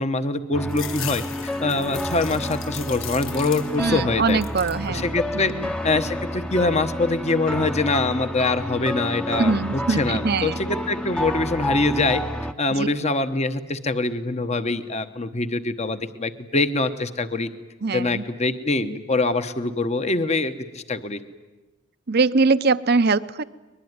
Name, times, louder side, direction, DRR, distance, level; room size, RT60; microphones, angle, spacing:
voice 1, 0.0-4.4 4.9-5.5 5.8-12.2 12.6-17.5 17.9-21.2, left 3 dB, 35° left, 10 dB, 1.1 m, -24 dB
sound 1, 0.5-12.5, equal, 5° left, 0.8 m, -30 dB
sound 2, 0.7-4.0 4.3-4.9 5.4-6.1, left 10 dB, 75° left, 1.4 m, -37 dB
voice 2, 3.8-5.1 5.5-5.7 9.4-10.6 12.7-12.9 17.8-18.2 22.1-23.4, right 4 dB, 55° right, 14 dB, 0.7 m, -22 dB
23.0 x 21.5 x 9.6 m, 1.1 s
head